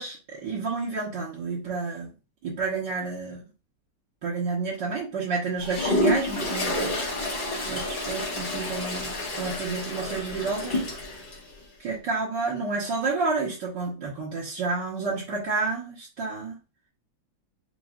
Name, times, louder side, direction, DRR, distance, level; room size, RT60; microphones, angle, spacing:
voice 1, 0.0-2.1 2.4-3.4 4.2-7.1 7.7-10.8 11.8-16.6, right 4 dB, 60° right, -6 dB, 1.9 m, -30 dB
Toilet flush, 5.6-11.4, left 1 dB, 35° left, 0.9 m, -29 dB
7.6 x 2.8 x 2.5 m, 0.32 s
omnidirectional pair, 2.2 m